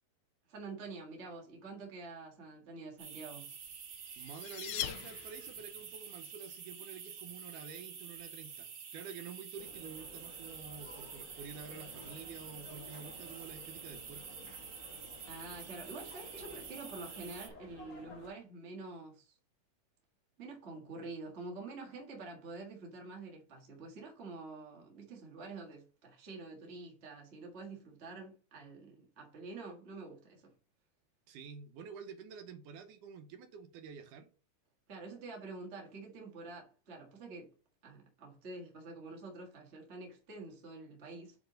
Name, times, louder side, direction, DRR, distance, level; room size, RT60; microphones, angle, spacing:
voice 1, 0.5-3.5 15.3-19.3 20.4-30.5 34.9-37.5 37.8-41.3, right 3 dB, 35° right, 1.0 m, -47 dB
sound 1, 3.0-17.5, right 7 dB, 55° right, 1.7 m, -48 dB
sound 2, 3.7-5.8, left 13 dB, 80° left, 1.9 m, -41 dB
voice 2, 4.2-14.4 31.3-34.3, right 6 dB, 75° right, 2.3 m, -49 dB
sound 3, 9.6-18.3, left 3 dB, 50° left, 1.1 m, -54 dB
8.3 x 4.2 x 3.9 m
omnidirectional pair, 4.0 m